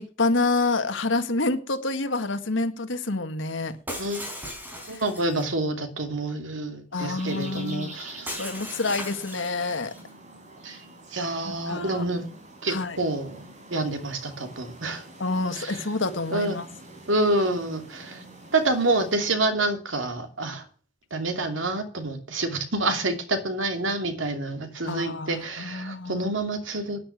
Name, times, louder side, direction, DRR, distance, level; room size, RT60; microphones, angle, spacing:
voice 1, 0.0-3.8 6.9-8.0 8.3-9.9 11.5-12.0 12.7-13.0 15.2-16.7 24.9-26.3, left 3 dB, 75° left, 8 dB, 1.8 m, -28 dB
Shatter, 3.9-5.5 8.3-10.1, equal, 10° right, 4.6 m, -38 dB
voice 2, 4.9-8.3 10.6-10.8 11.1-12.2 12.6-13.4 13.7-15.0 15.5-15.8 16.3-16.6 17.1-18.2 18.5-20.6 21.1-27.0, right 2 dB, 80° right, 6 dB, 2.6 m, -27 dB
sound 1, 7.2-19.2, right 2 dB, 40° right, 4.2 m, -46 dB
10.5 x 10.0 x 7.0 m, 0.38 s
head